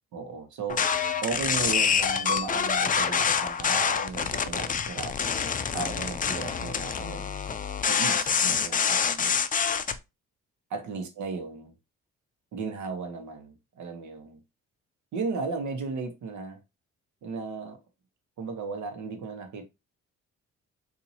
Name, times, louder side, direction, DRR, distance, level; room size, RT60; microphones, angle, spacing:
voice 1, 0.1-0.9 1.2-5.2 5.7-7.3 7.9-9.3 10.7-11.7 12.5-14.4 15.1-16.6 17.2-17.8 18.4-19.6, right 4 dB, 70° right, 1.1 m, -35 dB
sound 1, 0.7-10.0, left 6 dB, 30° left, 0.4 m, -26 dB
4.1 x 2.7 x 2.7 m
cardioid pair, 90°, 30 cm